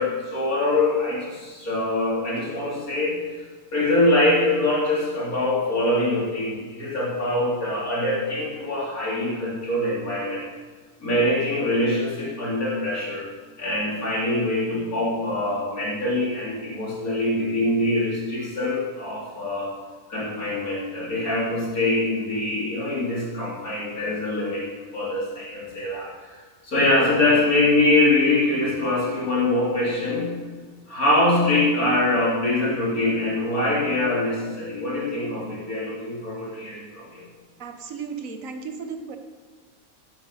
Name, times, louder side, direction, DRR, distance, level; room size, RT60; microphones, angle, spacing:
voice 1, 0.0-3.2 3.7-10.4 11.0-13.3 13.6-19.7 20.1-24.7 24.9-26.4 26.6-30.4 30.9-37.3, left 2 dB, 80° left, -6 dB, 4.1 m, -23 dB
voice 2, 37.6-39.2, right 5 dB, 70° right, 6 dB, 1.4 m, -35 dB
11.0 x 10.0 x 5.5 m, 1.4 s
omnidirectional pair, 1.5 m